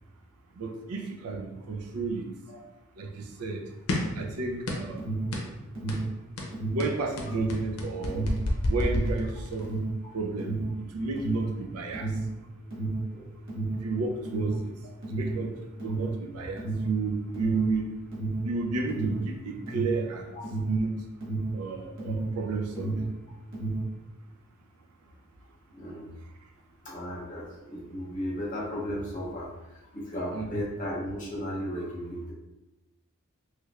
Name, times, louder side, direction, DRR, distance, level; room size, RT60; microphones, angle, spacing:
voice 1, 0.6-2.3 3.0-3.6 4.1-5.1 6.7-8.3 8.7-9.7 10.1-12.1 13.7-14.6 15.1-15.6 15.8-17.9 18.4-20.3 20.6-21.0 21.5-23.0 30.3-30.6, right 3 dB, 85° right, 3 dB, 0.5 m, -32 dB
sound 1, 3.9-4.2 4.7-5.0 5.3-5.5 5.9-6.1 6.4-9.7, left 1 dB, 75° left, 0.6 m, -30 dB
Alarm, 5.0-22.4 22.7-24.0, right 2 dB, 55° right, 1.3 m, -32 dB
voice 2, 25.7-26.1 26.8-32.3, equal, 35° left, -4 dB, 0.8 m, -35 dB
3.2 x 3.1 x 2.4 m, 1.0 s
head